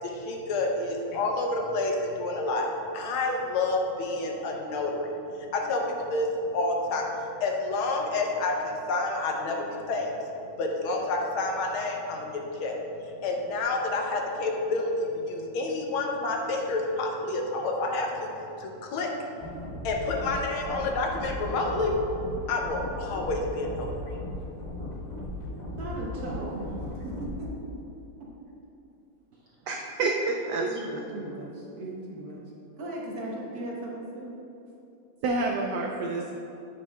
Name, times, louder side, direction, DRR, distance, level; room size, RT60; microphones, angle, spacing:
voice 1, 0.0-5.1 5.5-10.3 10.6-18.3 18.5-19.1 19.8-21.9 22.5-24.2, left 2 dB, 80° left, 1 dB, 1.7 m, -29 dB
sound 1, 19.4-27.4, left 1 dB, 30° left, 0.9 m, -37 dB
voice 2, 25.6-27.5 30.6-32.4 32.7-34.3, right 1 dB, 55° right, -3 dB, 1.2 m, -37 dB
voice 3, 29.7-30.9 35.2-36.4, right 3 dB, 85° right, 1 dB, 0.9 m, -28 dB
8.7 x 8.0 x 2.3 m, 2.8 s
omnidirectional pair, 2.3 m